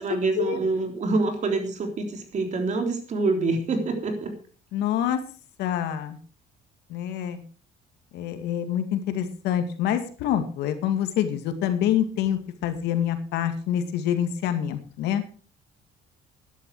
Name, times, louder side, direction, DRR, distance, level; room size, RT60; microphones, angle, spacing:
voice 1, 0.0-4.3, right 3 dB, 45° right, 5 dB, 3.6 m, -26 dB
voice 2, 4.7-5.2 5.6-6.2 6.9-7.4 8.1-15.2, left 10 dB, 85° left, 8 dB, 2.0 m, -26 dB
12.5 x 10.5 x 4.7 m, 0.39 s
cardioid pair, 110°, 17 cm